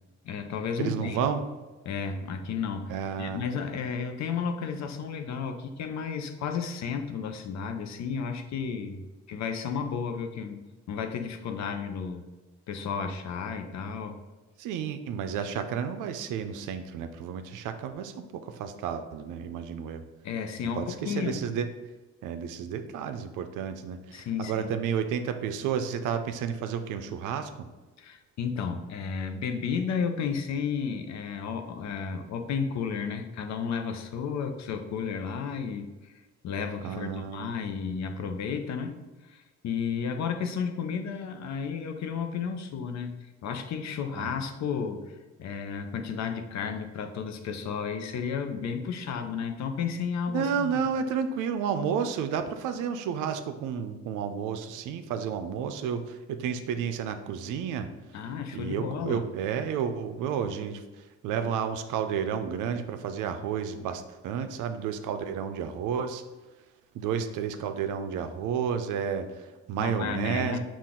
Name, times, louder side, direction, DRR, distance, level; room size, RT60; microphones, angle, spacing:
voice 1, 0.2-1.2 1.9-12.3 12.7-14.2 20.2-21.5 24.1-24.7 28.0-36.1 36.4-50.7 58.1-59.2 69.8-70.6, left 6 dB, 65° left, 6 dB, 0.6 m, -33 dB
voice 2, 0.8-1.4 2.9-3.4 14.6-20.0 20.7-21.7 22.2-27.7 36.8-37.6 44.2-44.3 50.3-57.9 58.5-66.2 66.9-70.6, right 7 dB, 85° right, 8 dB, 0.5 m, -31 dB
5.8 x 2.4 x 3.6 m, 1.2 s
cardioid pair, 90°, 30 cm